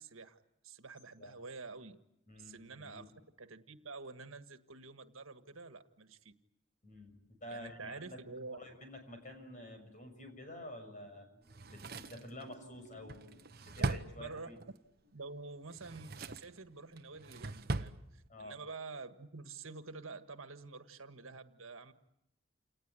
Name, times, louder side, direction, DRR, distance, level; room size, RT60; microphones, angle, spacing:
voice 1, 0.0-2.0 2.3-3.0 3.4-6.3 7.5-8.6 13.8-14.5 15.1-21.9, right 3 dB, 80° right, 9 dB, 1.6 m, -48 dB
voice 2, 2.3-3.1 6.8-8.2 8.5-14.6 18.3-18.5, left 1 dB, 40° left, 5 dB, 6.4 m, -50 dB
Drawer open or close, 11.5-14.8 15.6-16.6 17.0-18.0 18.3-18.4, right 2 dB, 50° right, 1.0 m, -40 dB
29.0 x 19.0 x 9.7 m, 0.85 s
head